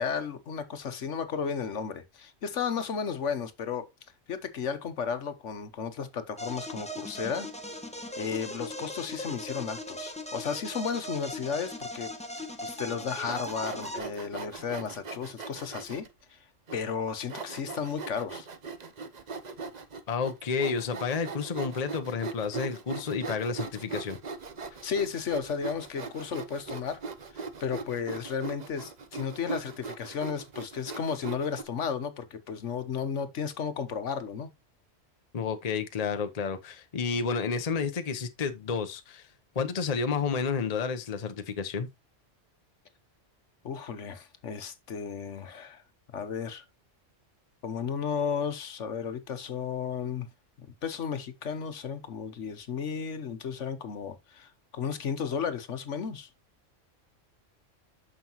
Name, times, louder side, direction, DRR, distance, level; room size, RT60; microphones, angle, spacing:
voice 1, 0.0-3.9 4.3-7.5 8.2-12.1 12.6-16.4 16.7-18.5 24.8-27.0 27.3-34.5 43.6-45.8 46.1-46.6 47.6-50.3 50.6-56.3, left 6 dB, 70° left, 1.3 m, -34 dB
sound 1, 6.4-14.0, left 1 dB, 5° left, 1.1 m, -39 dB
Sawing, 13.2-16.1 16.7-16.8 17.3-31.6, right 4 dB, 40° right, 0.8 m, -40 dB
voice 2, 20.1-24.2 35.3-39.3 39.5-41.9, left 5 dB, 35° left, 0.8 m, -30 dB
9.3 x 6.4 x 3.0 m
omnidirectional pair, 1.3 m